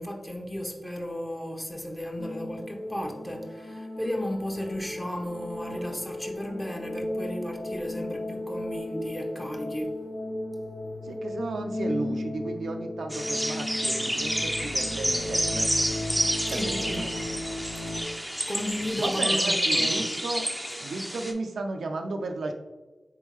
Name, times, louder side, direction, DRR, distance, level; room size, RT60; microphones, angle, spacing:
voice 1, 0.0-10.0 16.5-17.1 18.5-20.1, left 1 dB, 15° left, 1 dB, 0.9 m, -34 dB
sound 1, 2.2-18.0, left 1 dB, 75° left, 1.0 m, -35 dB
voice 2, 11.0-15.7 16.4-17.1 18.8-20.5 20.8-22.5, right 3 dB, 90° right, 4 dB, 0.4 m, -34 dB
sound 2, 13.1-21.3, equal, ahead, 0.6 m, -29 dB
4.3 x 3.5 x 3.1 m, 1.2 s
cardioid pair, 50°, 0 cm